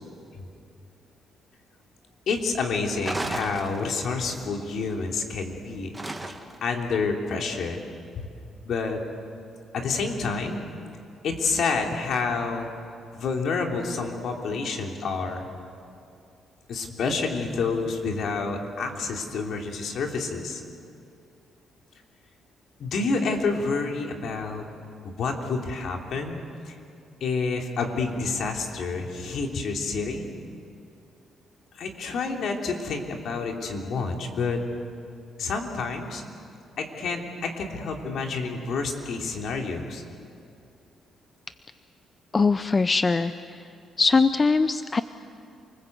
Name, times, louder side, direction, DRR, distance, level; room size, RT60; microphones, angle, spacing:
voice 1, 2.3-5.9 6.2-6.3 6.6-7.8 8.2-8.3 8.7-9.0 9.7-10.6 11.2-12.7 13.1-15.5 16.7-20.6 22.8-24.6 25.0-26.4 26.6-26.7 27.2-30.3 31.7-34.6 35.4-36.2 36.8-40.0, left 4 dB, 65° left, 2 dB, 3.2 m, -28 dB
sound 1, 3.0-4.2 5.9-6.7, right 2 dB, 15° right, 1.8 m, -34 dB
voice 2, 42.3-43.3 44.0-45.0, left 4 dB, 30° left, 12 dB, 0.6 m, -21 dB
28.5 x 20.5 x 8.1 m, 2.5 s
cardioid pair, 90°, 0 cm